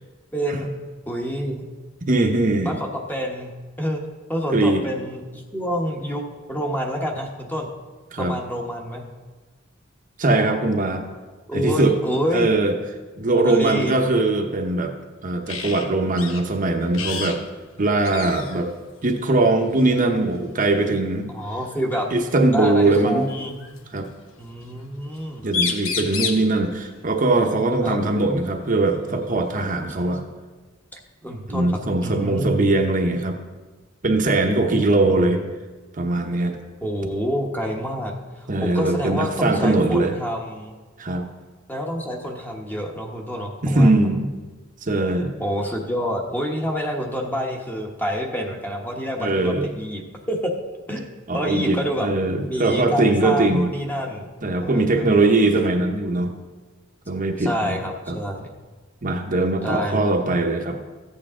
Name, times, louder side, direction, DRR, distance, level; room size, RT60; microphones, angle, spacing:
voice 1, 0.3-0.7 1.1-1.6 2.6-3.5 3.8-4.0 4.3-7.7 8.2-9.0 11.5-12.5 13.3-14.0 21.3-22.1 22.5-23.6 24.4-25.5 27.8-28.0 29.1-29.2 31.2-32.6 35.1-35.2 36.8-40.8 41.7-43.9 45.4-50.0 50.3-50.5 50.9-51.1 51.3-52.1 52.5-54.3 54.6-55.4 57.4-58.5 59.6-60.2, equal, 10° left, 1 dB, 1.1 m, -27 dB
voice 2, 2.1-2.7 4.5-4.8 8.1-8.3 10.2-11.0 11.5-12.0 12.3-12.7 13.2-14.9 15.2-17.4 17.8-18.7 19.0-21.3 22.1-23.3 23.9-24.1 25.4-30.2 31.5-33.4 34.0-35.4 36.0-36.6 38.5-40.1 41.0-41.2 43.6-44.3 44.8-45.3 49.2-49.7 51.3-53.7 54.4-56.3 57.1-57.8 58.1-58.2 59.0-60.8, right 2 dB, 40° right, 3 dB, 0.9 m, -21 dB
sound 1, 15.5-15.9 16.2-16.4 16.9-17.4 17.7-17.8 18.0-18.6 19.8-20.0 21.7-21.8 22.9-23.8 25.2-25.3 25.5-26.5 28.4-28.5 29.0-30.0, left 6 dB, 80° left, 1.0 m, -29 dB
14.5 x 8.4 x 3.7 m, 1.3 s
head